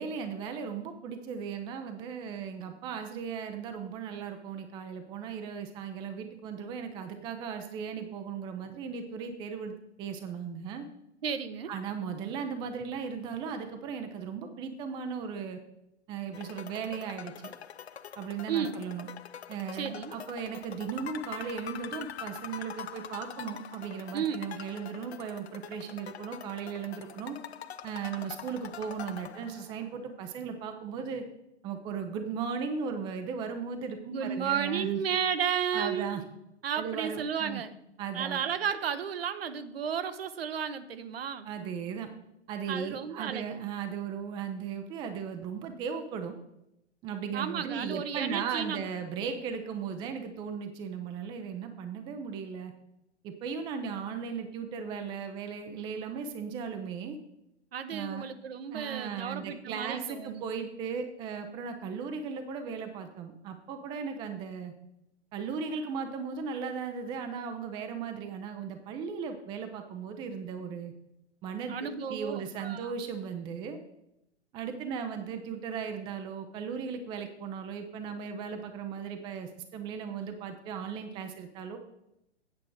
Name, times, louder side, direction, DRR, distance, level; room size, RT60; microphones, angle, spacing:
voice 1, 0.0-10.8 11.7-15.6 16.1-17.5 18.2-19.1 19.5-27.4 27.8-31.2 31.6-35.0 35.7-36.2 36.7-37.6 38.0-38.4 41.4-42.1 42.5-46.4 47.0-52.7 53.2-57.2 57.9-58.2 58.7-64.7 65.3-70.9 71.4-73.8 74.5-81.8, right 6 dB, 15° right, 7 dB, 0.5 m, -37 dB
voice 2, 11.2-11.7 18.5-18.8 19.7-20.1 24.1-24.5 34.1-36.2 36.6-37.7 38.1-41.5 42.7-43.5 47.3-48.8 57.7-60.4 64.0-64.2 71.7-72.9, right 7 dB, 55° right, 11 dB, 0.9 m, -33 dB
sound 1, 16.3-30.0, left 9 dB, 65° left, 0.6 m, -44 dB
8.7 x 7.4 x 4.6 m, 0.82 s
figure-of-eight pair, 120°, 35 cm